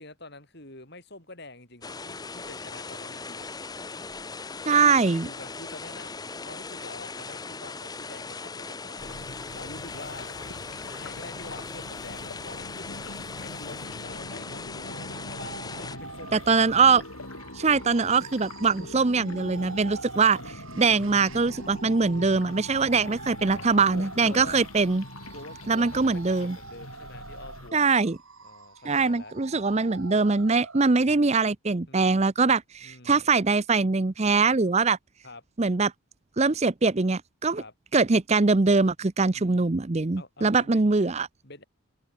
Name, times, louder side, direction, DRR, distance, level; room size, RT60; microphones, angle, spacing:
voice 1, 0.0-3.5 4.8-6.1 6.4-10.3 10.9-16.9 19.6-20.1 23.4-24.6 25.3-27.9 28.4-29.3 31.9-32.3 32.8-33.3 35.2-35.4 37.5-37.7 39.3-39.7 40.2-40.8 41.4-41.6, left 2 dB, 50° left, 7.5 m, -46 dB
sound 1, 1.8-16.0, left 4 dB, 20° left, 0.8 m, -39 dB
voice 2, 4.7-5.3 16.3-17.0 17.5-25.0 25.7-26.6 27.7-28.2 28.9-35.0 35.6-35.9 36.4-37.6 37.9-41.3, right 4 dB, 30° right, 0.6 m, -22 dB
sound 2, 9.0-27.7, left 2 dB, 80° left, 2.7 m, -43 dB
sound 3, 14.7-30.9, right 4 dB, 70° right, 3.4 m, -45 dB
head